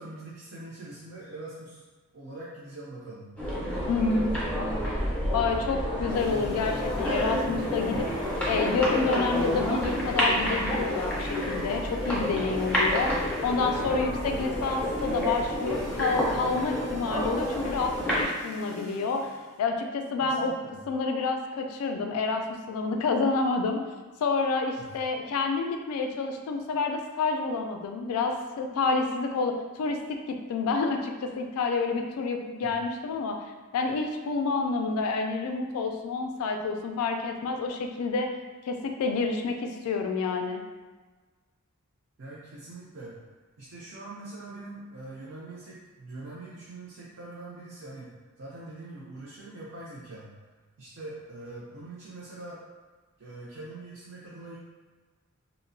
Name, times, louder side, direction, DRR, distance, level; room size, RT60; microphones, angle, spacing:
voice 1, 0.0-1.8 2.1-3.3 3.8-5.0 7.9-8.0 20.2-20.8 24.8-25.0 32.6-32.7 42.2-43.2 43.6-48.1 48.4-50.3 50.8-52.6 53.2-54.6, right 2 dB, 55° right, -6 dB, 0.4 m, -43 dB
sound 1, 3.4-18.2, equal, 5° left, 0.4 m, -29 dB
voice 2, 3.9-4.3 5.3-8.1 8.5-19.3 19.6-20.5 20.9-23.8 24.2-33.4 33.7-38.3 38.7-40.6, left 4 dB, 80° left, 6 dB, 0.3 m, -28 dB
sound 2, 6.1-19.6, left 1 dB, 80° right, 0.9 m, -46 dB
2.8 x 2.0 x 2.5 m, 1.3 s
head